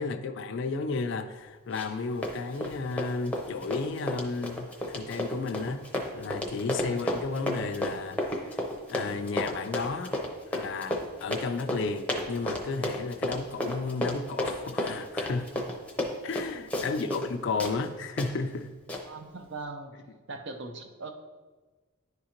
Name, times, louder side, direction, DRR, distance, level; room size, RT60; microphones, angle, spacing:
voice 1, 0.0-5.8 6.1-8.5 8.9-10.1 10.5-15.5 16.2-18.7, left 4 dB, 60° left, 8 dB, 0.4 m, -33 dB
Run, 1.7-17.3 17.6-17.7 18.2-18.3 18.9-19.0, left 1 dB, 5° left, 0.7 m, -32 dB
voice 2, 19.1-21.1, right 3 dB, 60° right, 6 dB, 0.6 m, -41 dB
10.0 x 3.7 x 2.9 m, 1.3 s
head